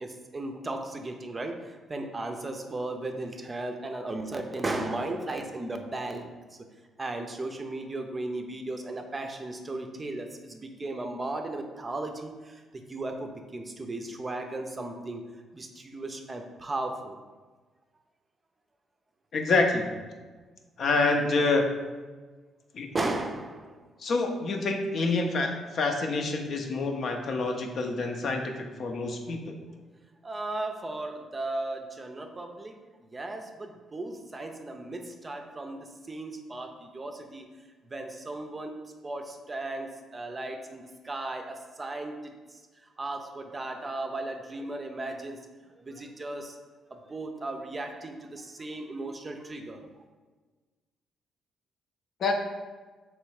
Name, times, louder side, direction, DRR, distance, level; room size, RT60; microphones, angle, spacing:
voice 1, 0.0-1.6 1.9-6.3 7.0-12.6 12.9-15.2 15.5-17.2 22.9-23.7 30.2-32.8 33.1-37.5 37.8-38.8 39.0-42.3 43.0-45.4 45.8-46.6 46.9-49.8, right 2 dB, 25° right, 4 dB, 0.5 m, -36 dB
voice 2, 19.3-19.9 20.8-21.6 22.7-22.9 24.0-28.4 28.8-29.5 52.2-52.4, left 3 dB, 60° left, 3 dB, 0.6 m, -27 dB
3.3 x 3.1 x 4.7 m, 1.3 s
cardioid pair, 90°, 0 cm